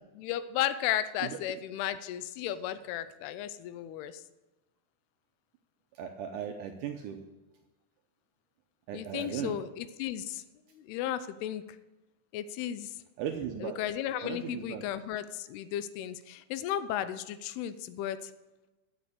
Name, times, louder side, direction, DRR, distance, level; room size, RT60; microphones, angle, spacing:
voice 1, 0.2-4.2 8.9-10.4 10.7-11.6 12.3-13.0 13.6-18.3, left 11 dB, 85° left, 13 dB, 2.7 m, -34 dB
voice 2, 6.0-7.2 8.9-9.6 13.2-13.8 14.2-14.8, right 9 dB, 80° right, 4 dB, 1.9 m, -37 dB
12.5 x 7.4 x 6.7 m, 1.1 s
omnidirectional pair, 4.5 m